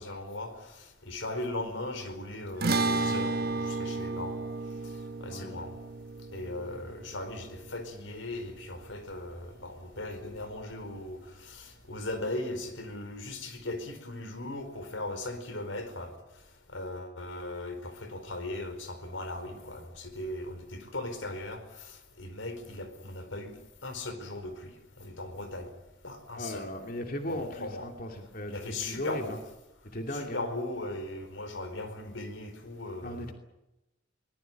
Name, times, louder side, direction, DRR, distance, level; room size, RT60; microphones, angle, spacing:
voice 1, 0.0-4.4 5.2-5.7 6.3-16.1 16.7-23.5 23.8-24.7 25.0-25.7 26.0-26.6 27.3-27.9 28.5-29.4 30.1-33.3, left 2 dB, 85° left, 9 dB, 4.6 m, -38 dB
sound 1, 2.6-9.1, right 3 dB, 55° right, 1.3 m, -33 dB
voice 2, 26.3-29.4 29.9-30.4 33.0-33.3, left 1 dB, 50° left, 3 dB, 2.6 m, -37 dB
23.5 x 20.5 x 9.2 m, 0.98 s
head